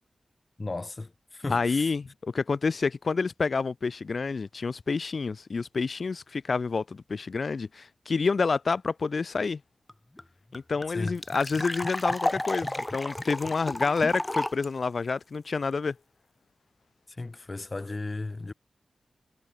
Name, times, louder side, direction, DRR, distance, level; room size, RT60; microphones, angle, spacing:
voice 1, 0.6-1.9 10.9-11.1 17.1-18.5, left 3 dB, 30° left, 2.0 m, -35 dB
voice 2, 1.5-9.6 10.5-15.9, left 4 dB, 55° left, 2.0 m, -28 dB
sound 1, 9.9-10.0 10.2-10.3 10.5-14.7, left 1 dB, 15° left, 1.4 m, -31 dB
wide cardioid pair, 90°, 0 cm